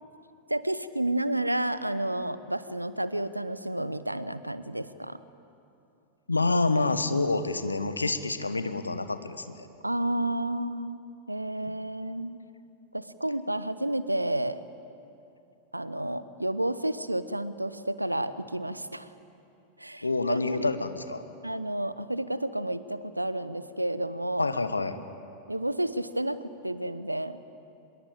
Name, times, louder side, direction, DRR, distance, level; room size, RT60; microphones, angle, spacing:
voice 1, 0.5-5.2 9.8-11.0 11.3-12.4 12.9-14.6 15.7-19.1 19.8-20.6 21.4-24.5 25.5-27.4, right 1 dB, 85° right, 15 dB, 0.8 m, -31 dB
voice 2, 6.3-9.7 20.0-21.2 24.4-25.0, left 3 dB, 80° left, 11 dB, 1.2 m, -27 dB
24.5 x 22.0 x 8.6 m, 2.7 s
figure-of-eight pair, 90°, 0 cm